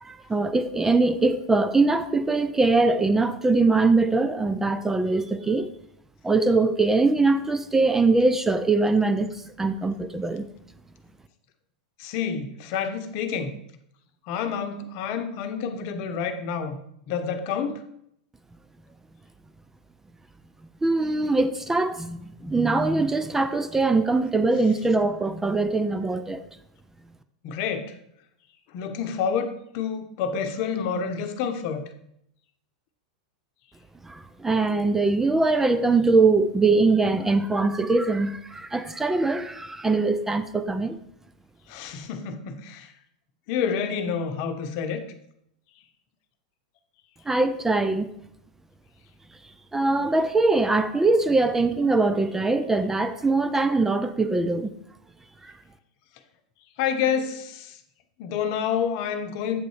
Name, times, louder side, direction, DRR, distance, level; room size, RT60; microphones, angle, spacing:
voice 1, 0.0-5.7 6.2-9.3 9.6-10.4 20.8-26.4 34.0-41.0 47.3-48.1 49.7-54.7 55.4-55.5, right 3 dB, 10° right, 0.5 m, -22 dB
voice 2, 12.0-13.6 14.3-16.8 17.1-17.8 27.4-28.0 28.7-31.8 41.7-42.9 43.5-45.0 56.8-57.8 58.2-59.6, left 7 dB, 55° left, 0.9 m, -28 dB
7.8 x 4.0 x 4.8 m
hypercardioid pair, 110°, 4 cm